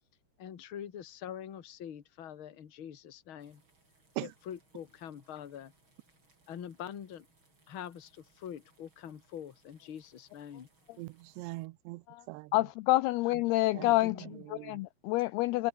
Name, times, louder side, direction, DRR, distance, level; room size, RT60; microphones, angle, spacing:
voice 1, 0.4-3.6 4.2-5.7 6.5-7.3 7.7-10.7 13.7-14.4, left 9 dB, 45° left, 1.7 m, -44 dB
sound 1, 3.4-11.7, right 3 dB, 25° right, 7.4 m, -69 dB
voice 2, 11.0-12.5 13.7-13.9 14.5-14.8, right 20 dB, 80° right, 2.8 m, -41 dB
voice 3, 12.5-15.7, left 19 dB, 80° left, 2.4 m, -28 dB
omnidirectional pair, 5.0 m